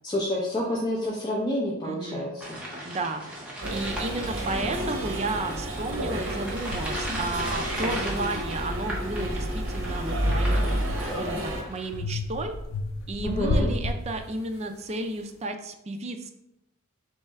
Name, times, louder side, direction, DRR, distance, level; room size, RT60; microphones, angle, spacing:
voice 1, 0.0-2.6 13.2-13.7, left 1 dB, 20° left, -6 dB, 0.7 m, -28 dB
voice 2, 1.8-2.3 2.8-3.2 3.7-10.8 11.2-12.6 13.1-16.3, right 2 dB, 30° right, 6 dB, 0.4 m, -32 dB
sound 1, 2.4-12.0, right 1 dB, 5° right, 0.9 m, -37 dB
sound 2, 3.6-11.6, equal, 70° right, 0.9 m, -30 dB
sound 3, 5.9-6.0 6.7-8.5 9.0-11.3 11.9-14.7, left 2 dB, 75° left, 0.5 m, -33 dB
4.2 x 3.2 x 3.5 m, 0.84 s
head